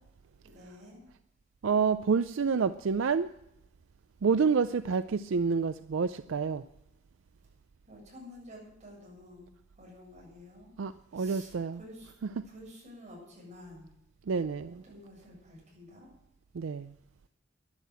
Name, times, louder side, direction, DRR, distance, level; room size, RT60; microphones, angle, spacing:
voice 1, 0.4-1.1 7.9-9.5 9.8-10.7 11.1-12.1 12.5-13.9 14.7-16.1, left 1 dB, 35° right, 7.7 m, -50 dB
voice 2, 1.6-3.3 4.2-6.6 10.8-11.8 12.4-12.5 14.3-14.8 16.5-16.9, right 5 dB, 75° right, 0.4 m, -28 dB
12.0 x 11.0 x 8.0 m
head